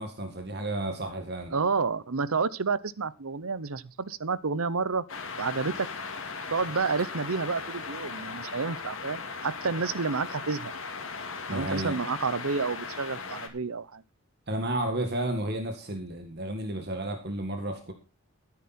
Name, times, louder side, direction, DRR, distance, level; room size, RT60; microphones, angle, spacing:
voice 1, 0.0-1.6 11.5-12.0 14.5-17.9, right 1 dB, 45° right, 5 dB, 1.8 m, -32 dB
voice 2, 1.5-5.0 5.4-5.9 6.5-10.7 11.5-14.0, right 4 dB, 75° right, 18 dB, 0.8 m, -30 dB
sound 1, 5.1-13.5, left 4 dB, 65° left, 2.4 m, -38 dB
13.5 x 9.9 x 4.3 m, 0.33 s
head